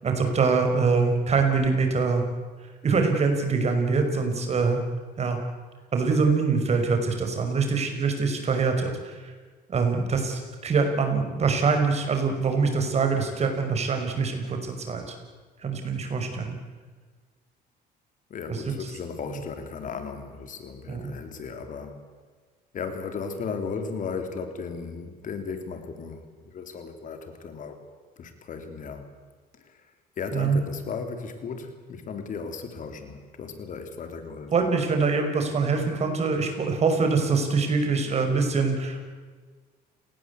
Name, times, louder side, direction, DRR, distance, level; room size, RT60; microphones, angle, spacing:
voice 1, 0.0-2.2 2.8-4.8 5.2-5.4 5.9-9.3 9.7-15.0 15.6-16.6 18.5-18.6 20.9-21.1 30.3-30.6 34.5-39.0, right 4 dB, 40° right, 5 dB, 5.6 m, -24 dB
voice 2, 18.3-22.0 22.7-27.8 28.2-29.1 29.5-34.5, left 5 dB, 50° left, 7 dB, 3.6 m, -36 dB
29.5 x 19.5 x 8.4 m, 1.4 s
cardioid pair, 110°, 17 cm